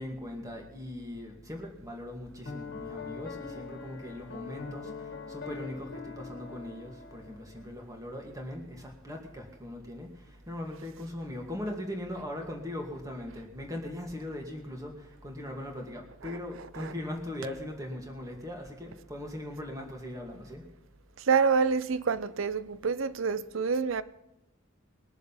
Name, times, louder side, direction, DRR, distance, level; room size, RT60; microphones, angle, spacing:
voice 1, 0.0-20.7, left 1 dB, 15° right, 2.2 m, -40 dB
Piano, 2.5-7.8, left 5 dB, 55° left, 1.8 m, -42 dB
voice 2, 21.2-24.0, right 5 dB, 75° right, 0.6 m, -27 dB
21.5 x 7.2 x 5.7 m
head